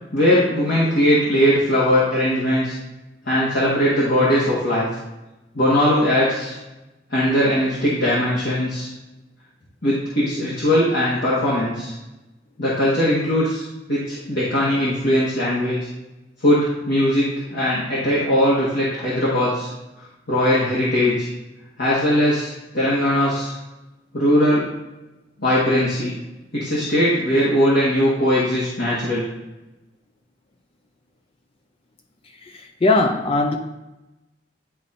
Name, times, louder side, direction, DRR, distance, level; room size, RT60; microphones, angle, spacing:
voice 1, 0.1-2.8 3.2-4.9 5.5-6.6 7.1-8.9 9.8-11.9 12.6-15.8 16.4-19.7 20.3-21.3 21.8-23.5 24.1-24.6 25.4-26.1 26.5-29.2, equal, 60° left, -8 dB, 1.5 m, -20 dB
voice 2, 32.5-33.6, left 2 dB, 30° left, 4 dB, 0.5 m, -19 dB
10.5 x 4.2 x 2.6 m, 1.0 s
head